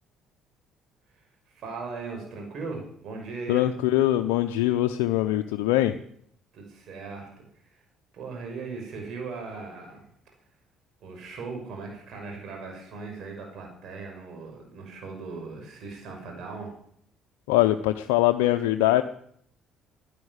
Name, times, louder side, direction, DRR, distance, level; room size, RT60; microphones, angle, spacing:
voice 1, 1.1-3.7 6.5-7.8 8.1-10.0 11.0-16.7, right 4 dB, 65° right, 2 dB, 6.1 m, -38 dB
voice 2, 3.5-5.9 17.5-19.0, left 15 dB, 85° left, 6 dB, 0.7 m, -22 dB
11.0 x 10.5 x 9.6 m, 0.68 s
supercardioid pair, 65°, 0 cm